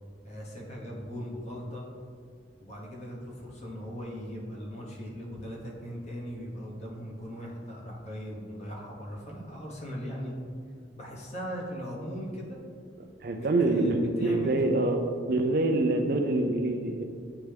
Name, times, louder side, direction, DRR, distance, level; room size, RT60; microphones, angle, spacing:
voice 1, 0.2-1.9 2.6-10.3 11.0-12.6 13.3-14.5, equal, 35° left, -3 dB, 1.1 m, -39 dB
voice 2, 13.2-17.0, right 2 dB, 55° right, 5 dB, 0.5 m, -26 dB
9.4 x 3.4 x 3.4 m, 2.3 s
head